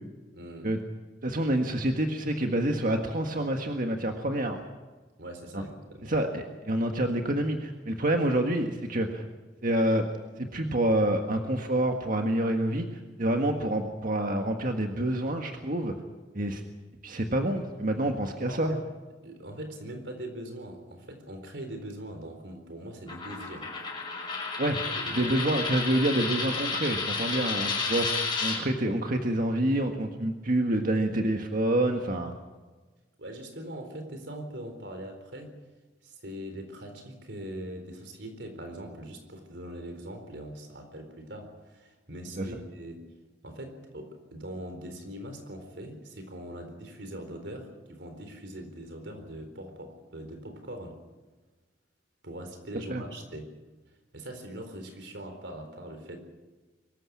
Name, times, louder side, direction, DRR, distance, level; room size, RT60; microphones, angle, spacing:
voice 1, 0.3-0.7 5.2-6.1 18.4-18.8 19.2-23.7 24.6-25.3 33.2-35.5 36.0-43.0 43.4-51.0 52.2-53.5 54.1-56.2, right 1 dB, 70° right, 6 dB, 4.1 m, -41 dB
voice 2, 1.2-4.6 5.5-5.6 6.1-9.2 9.6-10.1 10.4-15.9 16.3-16.6 17.0-18.7 24.6-24.8 25.1-32.3 42.4-42.5 52.9-53.0, right 1 dB, 50° right, 4 dB, 1.6 m, -27 dB
Coin (dropping), 23.1-28.6, left 4 dB, 25° left, 6.8 m, -31 dB
24.0 x 14.5 x 8.8 m, 1.3 s
head